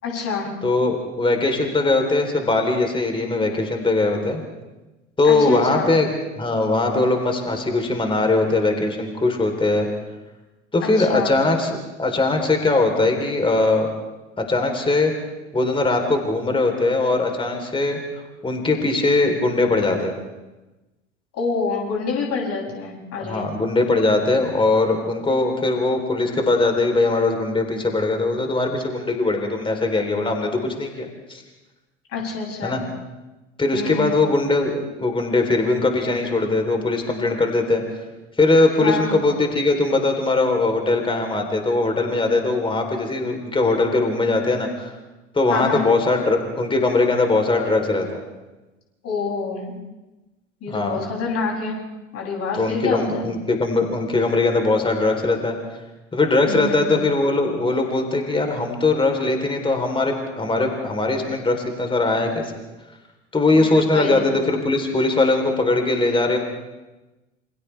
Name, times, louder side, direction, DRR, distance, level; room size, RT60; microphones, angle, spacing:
voice 1, 0.0-0.5 5.3-5.9 10.8-11.4 21.4-23.5 32.1-32.8 33.7-34.2 38.8-39.2 45.5-45.9 49.0-49.8 50.6-51.8 52.1-53.3 56.5-57.0 63.5-63.6 63.9-64.3, left 4 dB, 40° left, -1 dB, 7.7 m, -27 dB
voice 2, 0.6-4.4 5.2-6.1 6.4-9.9 10.7-13.9 14.4-15.1 15.5-18.0 18.4-20.1 23.2-31.4 32.6-32.8 33.6-37.8 38.4-44.9 45.3-48.2 50.7-51.0 52.5-55.6 56.1-62.4 63.3-66.4, left 2 dB, 15° left, 3 dB, 3.8 m, -20 dB
28.5 x 27.0 x 3.5 m, 1.1 s
figure-of-eight pair, 75°, 37 cm